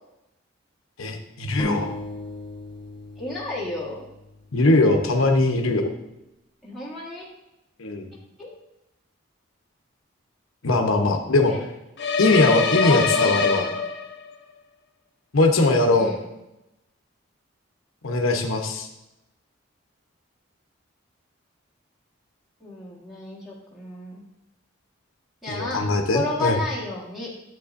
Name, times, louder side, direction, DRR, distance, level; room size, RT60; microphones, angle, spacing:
voice 1, 1.0-1.9 4.5-5.9 7.8-8.1 10.6-11.5 12.2-13.6 15.3-16.1 18.0-18.9 25.5-26.6, left 2 dB, 80° left, 3 dB, 0.9 m, -20 dB
sound 1, 1.6-5.2, left 1 dB, 20° left, 1.1 m, -36 dB
voice 2, 3.2-4.1 6.6-7.3 8.4-8.6 11.5-11.6 12.3-13.7 15.9-16.2 22.6-24.2 25.4-25.8 26.1-27.3, left 2 dB, ahead, -5 dB, 1.5 m, -32 dB
sound 2, 12.0-14.3, left 5 dB, 50° left, 0.7 m, -23 dB
9.6 x 7.8 x 2.6 m, 0.92 s
head